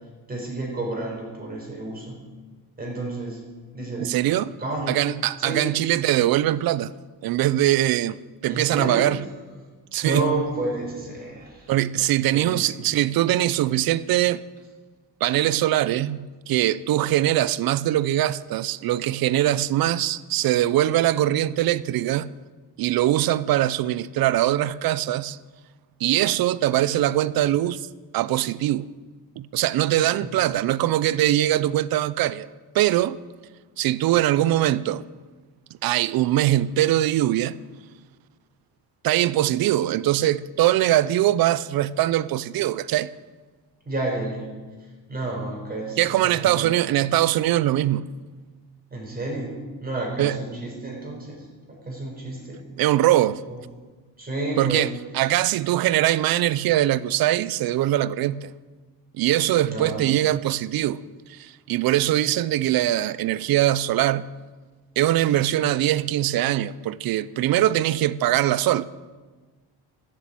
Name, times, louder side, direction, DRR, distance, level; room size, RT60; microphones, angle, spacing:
voice 1, 0.3-2.2 2.8-3.4 3.7-4.2 4.6-5.0 5.4-5.7 8.5-9.2 10.0-11.7 12.3-12.7 30.2-30.6 43.8-44.5 44.8-46.7 48.9-52.6 53.5-53.6 54.2-54.9 59.6-60.1, right 2 dB, 25° right, 5.0 m, -31 dB
voice 2, 4.0-4.5 4.9-6.9 7.2-8.2 8.4-9.2 9.9-10.2 11.7-14.4 15.2-22.3 22.8-25.4 26.0-27.9 28.1-28.9 29.4-32.5 32.7-33.2 33.8-35.0 35.8-37.6 39.0-43.1 46.0-48.1 50.2-50.4 52.8-53.4 54.6-58.5 59.1-61.0 61.3-64.3 65.0-68.9, right 13 dB, 65° right, 0.6 m, -22 dB
14.0 x 7.7 x 8.5 m
cardioid pair, 125°, 39 cm